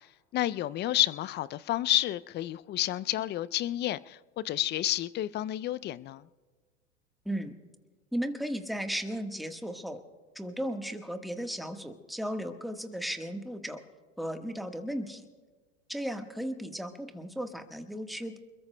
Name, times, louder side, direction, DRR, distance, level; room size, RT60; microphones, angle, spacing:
voice 1, 0.3-6.2, left 14 dB, 30° left, 0.4 m, -30 dB
voice 2, 8.1-10.0 10.3-13.8 14.2-15.3 15.9-18.4, equal, ahead, 1.3 m, -35 dB
30.0 x 22.0 x 2.2 m
hypercardioid pair, 90°, 38 cm